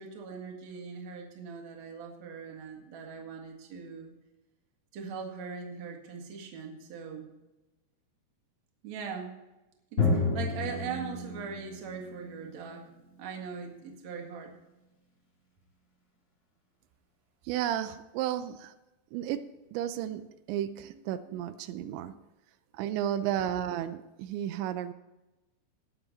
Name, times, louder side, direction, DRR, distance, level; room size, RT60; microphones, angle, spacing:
voice 1, 0.0-4.1 4.9-7.3 8.8-9.3 9.9-12.9 13.2-14.5 21.3-21.4, right 6 dB, 50° right, 1 dB, 2.5 m, -40 dB
Drum, 10.0-13.5, left 3 dB, 25° left, 1.6 m, -31 dB
voice 2, 17.5-18.7 19.1-19.4 19.7-22.1 22.7-24.9, right 11 dB, 85° right, 11 dB, 3.0 m, -33 dB
19.0 x 7.0 x 4.1 m, 1.0 s
omnidirectional pair, 5.1 m